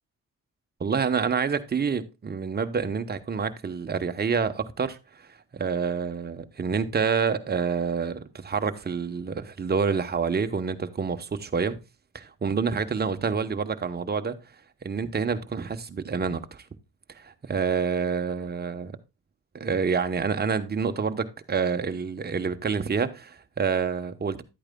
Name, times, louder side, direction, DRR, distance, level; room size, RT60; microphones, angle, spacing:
voice 1, 0.8-11.8 12.1-14.4 14.8-16.7 17.1-19.0 19.5-24.4, right 5 dB, 30° right, 0.9 m, -28 dB
11.0 x 8.7 x 2.2 m
cardioid pair, 95°, 33 cm